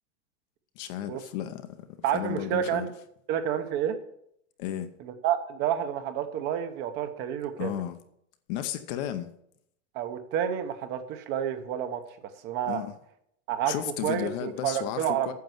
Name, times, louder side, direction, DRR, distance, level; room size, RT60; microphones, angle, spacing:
voice 1, 0.8-1.7 2.1-2.9 4.6-4.9 7.6-8.0 8.5-9.3 12.7-12.9 13.7-15.3, left 11 dB, 40° left, 0.8 m, -33 dB
voice 2, 2.0-2.9 3.3-4.0 5.0-7.8 9.9-12.0 12.4-12.8 13.5-13.8 14.0-15.3, right 9 dB, 30° right, 0.8 m, -29 dB
9.4 x 6.8 x 7.8 m
supercardioid pair, 170°, 35 cm